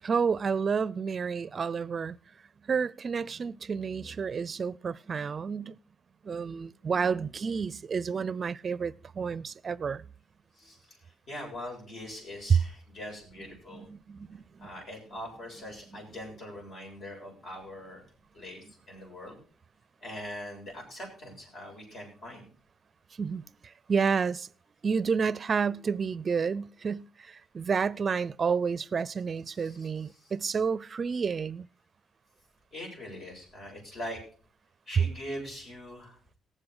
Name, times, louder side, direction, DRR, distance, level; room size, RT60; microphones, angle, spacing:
voice 1, 0.0-2.2 2.6-5.8 6.2-10.0 13.7-14.7 23.2-24.5 24.8-31.7, right 5 dB, 40° right, 0.5 m, -30 dB
voice 2, 10.5-13.9 14.6-18.0 18.3-19.4 20.0-22.5 29.5-29.9 30.2-30.3 32.7-34.2 34.9-36.2, left 1 dB, 55° left, 7.4 m, -42 dB
18.0 x 7.6 x 4.9 m
cardioid pair, 90°, 0 cm